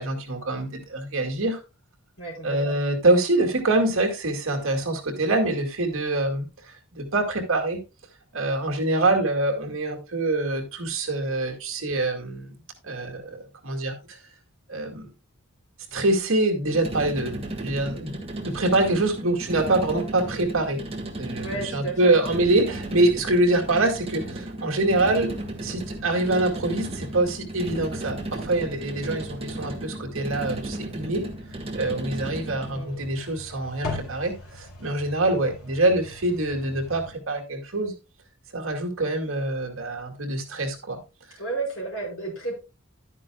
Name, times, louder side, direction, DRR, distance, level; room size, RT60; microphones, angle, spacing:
voice 1, 0.0-1.6 2.4-7.8 8.3-12.6 12.8-14.2 14.7-15.1 15.9-20.8 21.1-25.3 25.6-31.3 31.7-37.9 38.5-41.0 41.3-41.4, right 2 dB, 65° right, 3 dB, 2.1 m, -25 dB
voice 2, 2.2-2.8 21.4-22.2 32.6-32.9 41.4-42.6, right 3 dB, 55° left, -1 dB, 5.3 m, -32 dB
sound 1, 16.6-32.8, right 1 dB, 25° right, 1.5 m, -35 dB
sound 2, 24.8-37.1, left 2 dB, 85° left, 2.8 m, -42 dB
11.5 x 9.8 x 2.3 m, 0.28 s
head